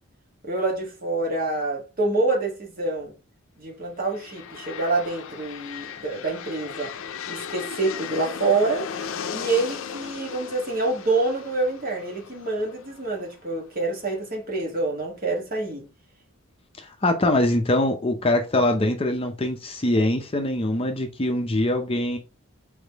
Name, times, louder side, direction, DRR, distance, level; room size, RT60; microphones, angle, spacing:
voice 1, 0.4-3.1 3.6-6.9 7.3-8.9 9.3-15.9, right 3 dB, 45° right, 1.5 m, -26 dB
sound 1, 4.0-13.8, left 7 dB, 75° left, 0.5 m, -37 dB
voice 2, 16.8-22.2, left 1 dB, 25° left, 0.5 m, -23 dB
4.0 x 3.6 x 3.4 m
head